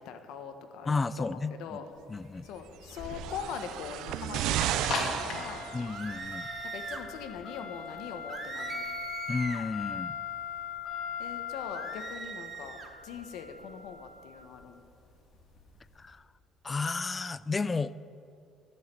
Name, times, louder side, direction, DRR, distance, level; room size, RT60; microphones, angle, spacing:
voice 1, 0.0-1.9 2.4-5.7 6.7-8.8 11.2-12.8 13.0-14.8, left 7 dB, 85° left, 7 dB, 1.2 m, -42 dB
voice 2, 0.9-1.5 2.1-2.5 5.7-6.5 9.3-10.2 16.0-16.2 16.6-17.9, left 4 dB, 20° left, 16 dB, 0.3 m, -32 dB
sound 1, 1.9-16.0, left 6 dB, 55° left, 2.3 m, -40 dB
sound 2, 2.9-6.3 7.2-7.3, right 13 dB, 80° right, 0.4 m, -34 dB
sound 3, 5.9-7.1 8.3-9.7 11.7-12.9, right 5 dB, 35° right, 1.0 m, -40 dB
12.0 x 6.5 x 9.3 m, 2.6 s
cardioid pair, 140°, 0 cm